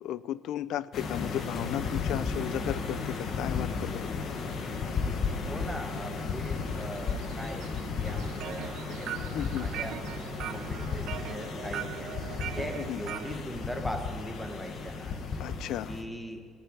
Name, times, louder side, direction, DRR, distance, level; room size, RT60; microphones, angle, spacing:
voice 1, 0.0-4.4 9.3-9.7 12.8-13.0 15.4-15.9, left 12 dB, 65° left, 18 dB, 0.4 m, -35 dB
sound 1, 0.9-16.0, left 5 dB, 45° left, 1.3 m, -34 dB
voice 2, 5.5-7.7 8.0-9.2 9.6-10.0 10.4-12.1 12.4-15.2 15.9-16.4, left 1 dB, 5° left, 4 dB, 1.2 m, -40 dB
sound 2, 5.6-12.9, right 7 dB, 80° right, 1.4 m, -49 dB
sound 3, 8.1-13.4, right 12 dB, 65° right, 0.4 m, -40 dB
16.5 x 6.8 x 9.2 m, 2.2 s
cardioid pair, 160°, 0 cm